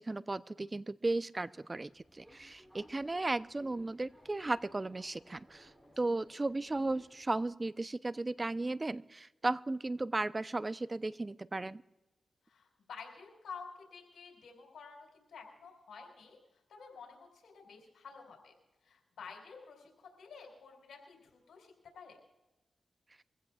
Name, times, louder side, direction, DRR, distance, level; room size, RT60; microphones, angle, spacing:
voice 1, 0.0-5.7 6.0-11.8, right 2 dB, 30° right, 15 dB, 0.6 m, -35 dB
Subway metro underground, 1.8-7.4, equal, 15° right, 2.9 m, -61 dB
voice 2, 12.5-16.4 16.7-18.5 18.8-22.2, left 5 dB, 85° left, 2 dB, 4.1 m, -51 dB
24.0 x 15.5 x 2.4 m, 1.0 s
cardioid pair, 50°, 0 cm